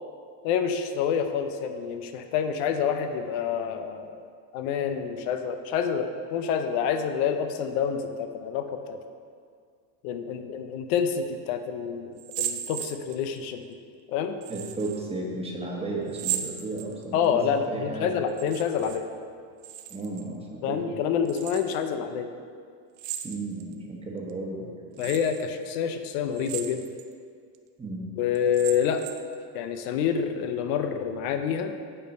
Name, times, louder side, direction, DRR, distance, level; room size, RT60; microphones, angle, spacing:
voice 1, 0.4-4.2 4.5-9.0 10.0-13.7 14.1-14.4 17.1-19.1 20.6-22.3 25.0-26.8 28.2-29.0 29.5-31.7, left 7 dB, 80° left, 8 dB, 0.8 m, -27 dB
sound 1, 12.2-13.4 14.4-15.0 16.1-17.3 18.3-19.0 19.3-20.3 21.2-21.8 23.0-23.7 24.3-24.4 25.0-25.4 26.3-27.1 27.5-27.6 28.3-29.3, right 11 dB, 45° right, 0.6 m, -36 dB
voice 2, 14.5-17.4 17.7-18.2 19.9-21.0 23.2-24.7 27.8-28.1, right 2 dB, 15° right, -2 dB, 1.1 m, -34 dB
8.8 x 4.5 x 5.3 m, 2.2 s
cardioid pair, 140°, 44 cm